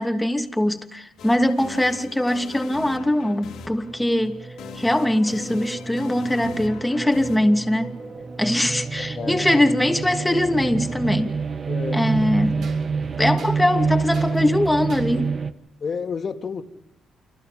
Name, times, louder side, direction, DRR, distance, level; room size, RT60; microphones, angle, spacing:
voice 1, 0.0-4.4 4.7-7.9 8.4-11.4 11.9-12.7 13.2-15.4, left 1 dB, 10° left, 2.8 m, -22 dB
sound 1, 1.2-9.1, left 7 dB, 80° left, 3.2 m, -42 dB
sound 2, 3.6-15.5, right 5 dB, 40° right, 1.7 m, -28 dB
sound 3, 5.8-6.7 8.0-8.1 10.2-10.3 11.0-11.1 12.6-15.3, right 5 dB, 70° right, 6.9 m, -48 dB
voice 2, 9.0-9.5 11.3-11.4 11.7-12.2 13.2-13.5 15.8-16.6, left 5 dB, 45° left, 2.6 m, -31 dB
30.0 x 24.5 x 5.3 m
cardioid pair, 90°, 0 cm